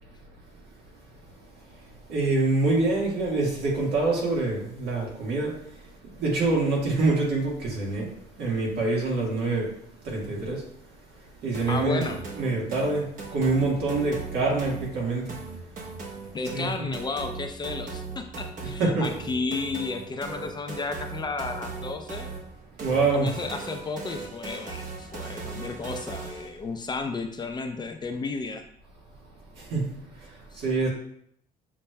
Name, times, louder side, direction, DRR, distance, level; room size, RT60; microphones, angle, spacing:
voice 1, 2.1-5.6 6.1-9.7 10.0-10.7 11.4-15.3 16.5-16.9 18.8-19.0 22.8-23.3 29.6-30.3 30.5-30.9, right 3 dB, 75° right, -3 dB, 1.6 m, -26 dB
sound 1, 11.5-26.6, right 4 dB, 50° right, 1.1 m, -38 dB
voice 2, 11.7-12.2 16.3-22.3 23.1-28.6 30.5-30.6, left 3 dB, 25° left, 5 dB, 0.5 m, -33 dB
6.9 x 3.1 x 2.2 m, 0.68 s
cardioid pair, 110°, 17 cm